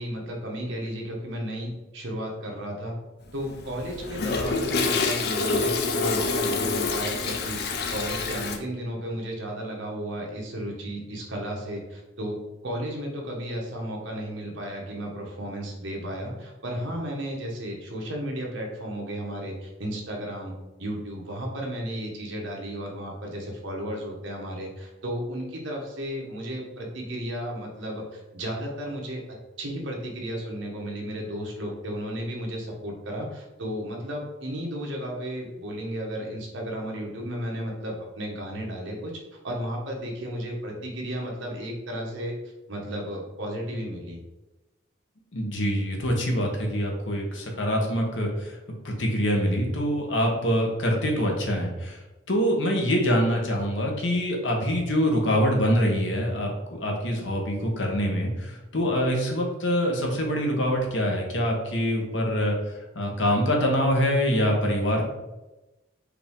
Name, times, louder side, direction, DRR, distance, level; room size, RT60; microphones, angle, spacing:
voice 1, 0.0-2.9 3.3-7.6 7.9-12.4 12.6-20.5 20.8-39.1 39.4-42.3 42.7-44.2, equal, 75° right, -1 dB, 1.1 m, -33 dB
Toilet flush, 3.3-8.6, left 3 dB, 50° left, 0.5 m, -27 dB
voice 2, 45.3-48.6 48.8-52.0 52.3-62.6 62.9-65.0, equal, 70° left, 0 dB, 1.0 m, -25 dB
4.8 x 2.7 x 3.5 m, 1.0 s
head